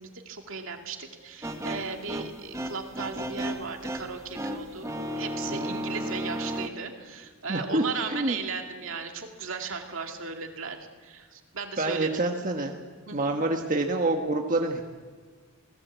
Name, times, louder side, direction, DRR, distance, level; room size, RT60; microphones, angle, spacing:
voice 1, 0.0-12.1 13.1-13.3, right 5 dB, 65° right, 3 dB, 2.4 m, -36 dB
sound 1, 1.4-6.7, equal, 15° right, 1.4 m, -34 dB
voice 2, 7.5-7.8 8.1-8.4 11.8-12.7 13.1-14.8, right 2 dB, 40° right, 2 dB, 1.5 m, -27 dB
29.5 x 18.0 x 8.2 m, 1.5 s
head